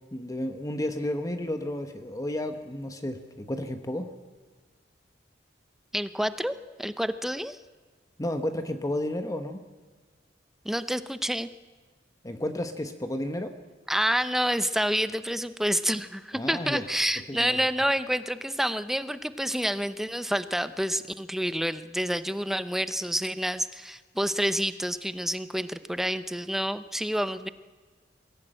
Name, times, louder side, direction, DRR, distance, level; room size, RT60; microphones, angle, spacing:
voice 1, 0.1-4.1 8.2-9.6 12.2-13.5 16.3-16.9 17.3-17.6, left 1 dB, 20° left, 7 dB, 1.1 m, -32 dB
voice 2, 5.9-7.6 10.6-11.5 13.9-27.5, equal, ahead, 12 dB, 0.7 m, -28 dB
21.5 x 17.0 x 8.9 m, 1.4 s
head